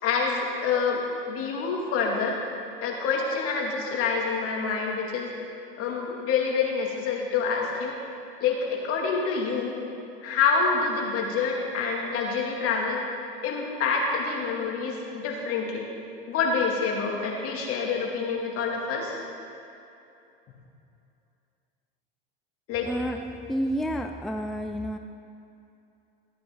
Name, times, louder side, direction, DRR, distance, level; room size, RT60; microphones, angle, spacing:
voice 1, 0.0-2.4 2.8-5.3 5.8-7.9 8.4-9.8 10.2-13.0 13.4-15.9 16.3-19.2 22.7-22.9, left 5 dB, 50° left, -1 dB, 2.4 m, -27 dB
voice 2, 22.8-25.0, equal, ahead, 5 dB, 0.4 m, -30 dB
15.0 x 9.3 x 3.9 m, 2.8 s
hypercardioid pair, 85°, 29 cm